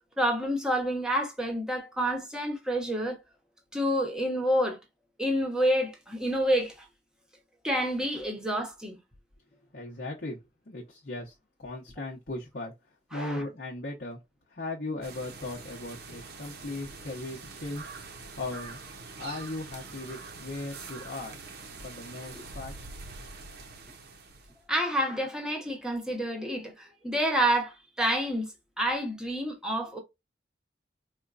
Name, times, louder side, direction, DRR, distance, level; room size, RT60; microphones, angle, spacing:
voice 1, 0.2-3.2 3.7-4.8 5.2-6.9 7.6-9.0 13.1-13.4 24.7-28.5 28.8-30.0, equal, 5° right, 0.9 m, -28 dB
voice 2, 9.7-14.2 14.5-18.8 19.2-21.4 21.8-22.7, left 2 dB, 60° left, 0.9 m, -38 dB
sound 1, 15.0-24.6, right 4 dB, 60° right, 0.7 m, -44 dB
4.3 x 2.3 x 2.5 m
head